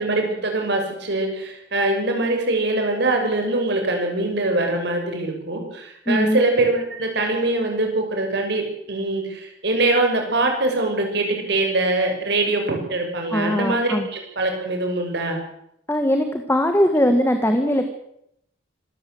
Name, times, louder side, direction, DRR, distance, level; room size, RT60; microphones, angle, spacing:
voice 1, 0.0-15.4, right 2 dB, 65° right, 3 dB, 6.5 m, -23 dB
voice 2, 6.1-6.4 13.3-14.1 15.9-17.9, equal, 15° left, 6 dB, 1.7 m, -20 dB
26.0 x 14.5 x 7.9 m, 0.77 s
head